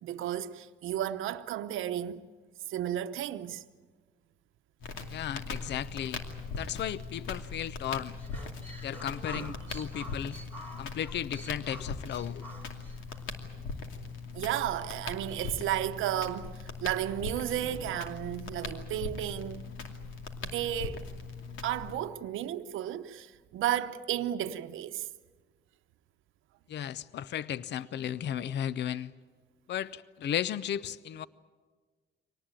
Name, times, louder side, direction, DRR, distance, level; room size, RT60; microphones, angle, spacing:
voice 1, 0.0-2.3 2.7-3.6 9.3-9.6 14.3-19.6 20.4-21.0 21.6-25.1, right 12 dB, 85° right, 0.8 m, -33 dB
Crackle, 4.8-21.9, left 4 dB, 85° left, 2.6 m, -40 dB
voice 2, 5.1-6.2 6.6-8.1 8.8-10.4 10.8-12.5 26.7-29.1 29.7-31.3, left 10 dB, 60° left, 0.6 m, -35 dB
sound 1, 8.2-13.2, right 1 dB, 10° left, 3.4 m, -47 dB
24.5 x 19.0 x 9.0 m
cardioid pair, 90°, 20 cm